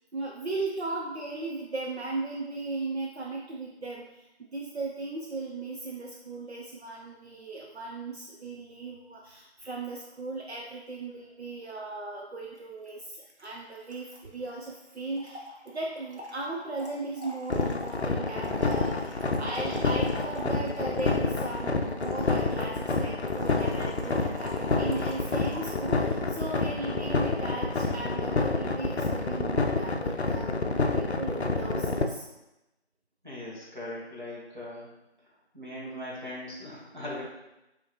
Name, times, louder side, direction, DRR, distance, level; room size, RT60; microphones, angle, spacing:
voice 1, 0.1-30.5 30.9-32.2, right 3 dB, 70° right, -2 dB, 0.6 m, -37 dB
Trickle dribble / Fill (with liquid), 12.5-12.6 12.9-13.0 13.1-26.2, left 1 dB, 85° right, 1.0 m, -46 dB
sound 1, 17.5-32.0, left 3 dB, 70° left, 0.5 m, -28 dB
voice 2, 33.2-34.9 35.5-37.2, left 1 dB, 45° right, -7 dB, 1.4 m, -39 dB
5.0 x 2.8 x 2.9 m, 0.95 s
figure-of-eight pair, 180°, 33 cm